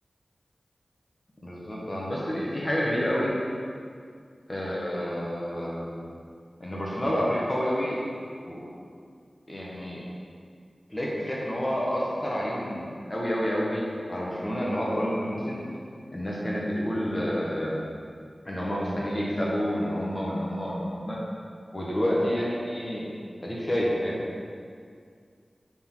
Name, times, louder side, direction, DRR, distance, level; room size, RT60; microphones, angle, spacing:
voice 1, 1.4-3.3 4.5-6.0 6.6-8.0 8.4-8.6 9.5-10.0 10.9-13.8 14.1-15.6 16.1-17.8 18.4-21.2 21.7-23.1 23.4-24.2, equal, 30° left, -5 dB, 1.4 m, -29 dB
7.0 x 5.8 x 4.0 m, 2.2 s
wide cardioid pair, 65°, 0 cm